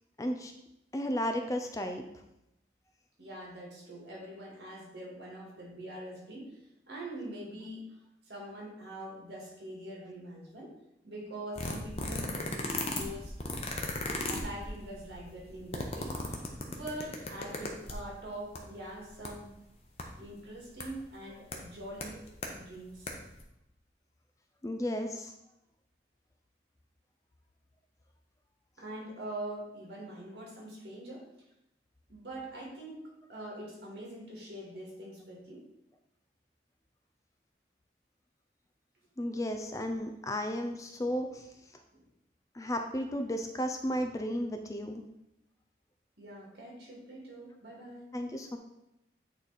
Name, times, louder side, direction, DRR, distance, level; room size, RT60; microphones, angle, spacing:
voice 1, 0.2-0.5 0.9-2.0 24.6-25.3 39.2-41.5 42.5-45.0 48.1-48.6, equal, 20° left, 5 dB, 0.4 m, -33 dB
voice 2, 3.2-6.6 6.9-8.0 8.3-10.7 11.0-13.3 14.3-16.2 16.7-19.5 20.2-22.3 22.5-23.1 28.8-31.3 32.1-35.6 41.9-42.0 46.2-48.1, right 1 dB, 70° right, -2 dB, 2.1 m, -44 dB
sound 1, 11.6-18.1 18.5-18.6 18.9-19.3 20.0-20.1 20.8-20.9 21.5-21.6 22.0-22.5 22.9-23.1 23.3-23.4, left 2 dB, 35° left, 0.8 m, -36 dB
8.8 x 3.2 x 4.1 m, 0.85 s
head